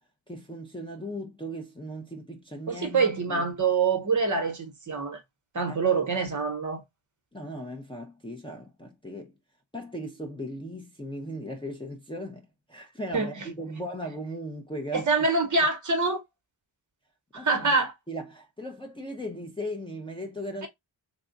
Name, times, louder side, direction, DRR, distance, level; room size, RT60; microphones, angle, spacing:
voice 1, 0.3-3.5 5.7-5.8 7.3-9.3 9.7-15.1 17.3-17.7 18.1-20.7, equal, 10° left, 0.6 m, -37 dB
voice 2, 2.7-5.2 5.5-6.8 13.1-13.5 14.9-16.2 17.3-17.9 20.6-20.7, right 4 dB, 40° right, 0.9 m, -25 dB
3.6 x 2.3 x 3.8 m
wide cardioid pair, 170°, 46 cm